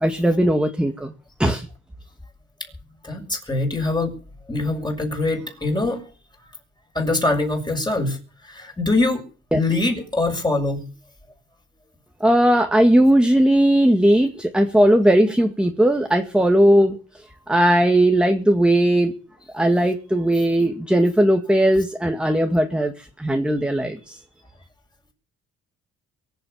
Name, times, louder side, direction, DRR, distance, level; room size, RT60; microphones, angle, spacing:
voice 1, 0.0-1.1 1.4-1.7 9.5-9.6 12.2-17.0 17.5-19.1 19.5-22.9 23.2-24.2, right 1 dB, 5° right, 5 dB, 2.0 m, -18 dB
voice 2, 3.0-4.1 4.5-6.0 6.9-8.2 8.5-9.2 9.5-10.8, left 2 dB, 15° left, 4 dB, 6.7 m, -23 dB
23.5 x 8.0 x 7.4 m, 0.38 s
cardioid pair, 90°, 30 cm